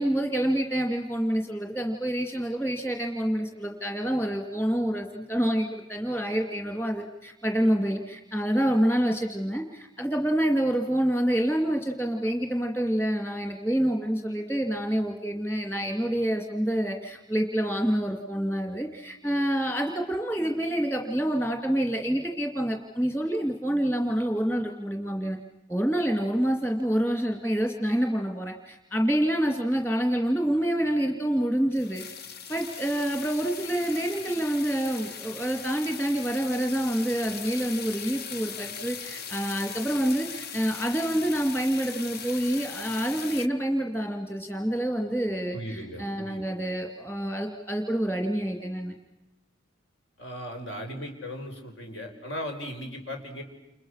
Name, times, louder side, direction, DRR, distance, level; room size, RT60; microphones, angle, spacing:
voice 1, 0.0-25.4 25.7-32.0 32.5-48.9, right 1 dB, 10° left, 2 dB, 2.5 m, -27 dB
sound 1, 31.7-43.5, left 7 dB, 50° left, 0.9 m, -39 dB
voice 2, 45.5-46.5 50.2-53.4, equal, 65° left, 3 dB, 5.3 m, -37 dB
30.0 x 29.5 x 6.5 m, 0.95 s
head